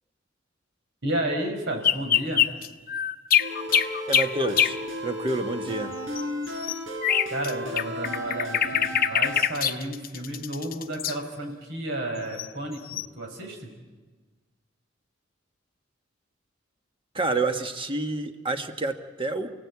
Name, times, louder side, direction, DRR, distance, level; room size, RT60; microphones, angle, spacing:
voice 1, 1.0-2.4 7.3-13.7, right 1 dB, 65° right, 2 dB, 4.9 m, -32 dB
sound 1, 1.8-4.8 6.2-7.5 7.8-11.1 12.4-12.5 12.9-13.1, left 9 dB, 45° left, 0.8 m, -24 dB
sound 2, 3.4-9.4, equal, 85° right, 5.2 m, -34 dB
voice 2, 4.1-6.0 17.1-19.5, right 2 dB, 25° right, 6 dB, 1.5 m, -28 dB
29.0 x 17.0 x 8.3 m, 1.3 s
head